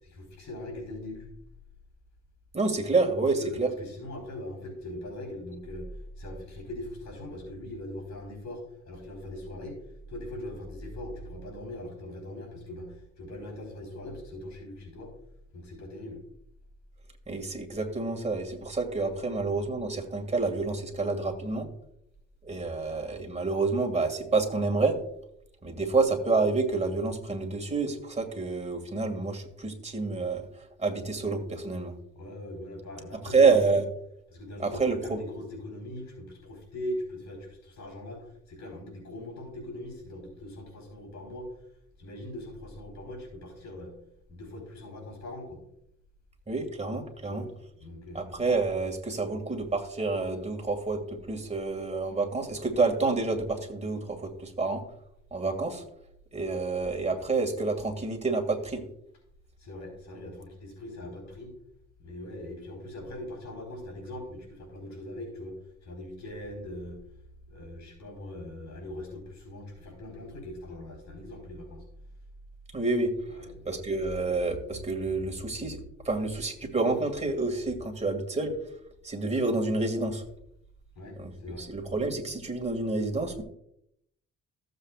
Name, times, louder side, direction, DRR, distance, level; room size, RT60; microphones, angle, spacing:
voice 1, 0.0-1.3 3.4-8.6 8.9-9.8 10.1-15.1 15.5-16.2 32.1-33.7 34.3-41.5 42.0-44.0 44.3-45.6 47.2-48.3 59.6-61.5 62.0-67.0 67.5-71.8 73.3-73.7 81.0-81.7, left 1 dB, 65° left, 0 dB, 4.1 m, -41 dB
voice 2, 2.5-3.7 17.3-21.7 22.4-25.0 25.6-30.4 30.8-31.9 33.3-33.8 34.6-35.0 46.5-47.4 48.1-51.0 51.3-54.8 55.3-55.8 56.3-58.8 72.7-73.1 73.7-78.5 79.0-80.2 81.2-81.3 81.6-83.4, right 3 dB, 20° right, 4 dB, 2.2 m, -28 dB
15.0 x 7.8 x 2.4 m, 0.75 s
cardioid pair, 90°, 30 cm